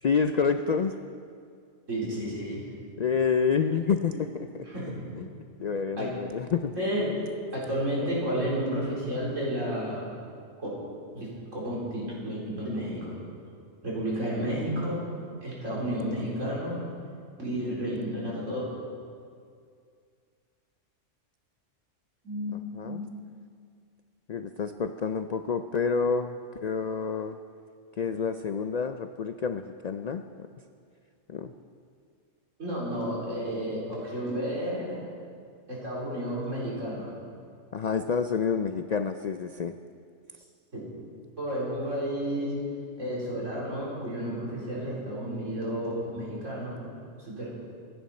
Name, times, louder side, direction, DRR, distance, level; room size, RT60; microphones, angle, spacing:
voice 1, 0.0-1.0 3.0-4.6 5.2-5.3 5.6-6.8 22.5-23.0 24.3-26.4 26.6-27.4 28.0-30.2 31.3-31.5 37.7-39.7, left 6 dB, 65° left, 9 dB, 0.4 m, -28 dB
voice 2, 1.9-2.7 4.1-4.2 4.7-4.9 6.0-6.1 6.8-7.2 7.5-10.0 10.6-10.7 11.1-13.2 13.8-15.0 15.4-16.8 17.4-18.7 22.2-23.0 32.6-35.0 35.7-37.1 40.7-40.8 41.4-42.5 43.0-46.8 47.2-47.5, equal, 80° right, -6 dB, 4.5 m, -31 dB
25.0 x 10.5 x 4.3 m, 2.3 s
omnidirectional pair, 1.3 m